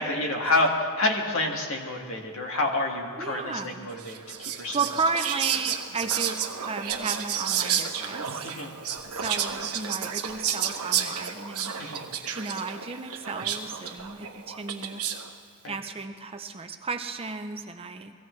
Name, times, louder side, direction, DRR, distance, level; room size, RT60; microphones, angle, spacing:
voice 1, 0.0-4.8 8.4-8.7 11.8-12.0 15.6-15.8, left 2 dB, 65° left, 1 dB, 1.8 m, -28 dB
voice 2, 3.2-3.9 4.7-8.5 9.1-11.7 12.3-15.0 15.7-18.1, right 4 dB, 25° right, 6 dB, 0.6 m, -33 dB
Whispering, 4.0-15.3, right 8 dB, 80° right, 1.0 m, -31 dB
23.0 x 16.5 x 3.2 m, 2.2 s
head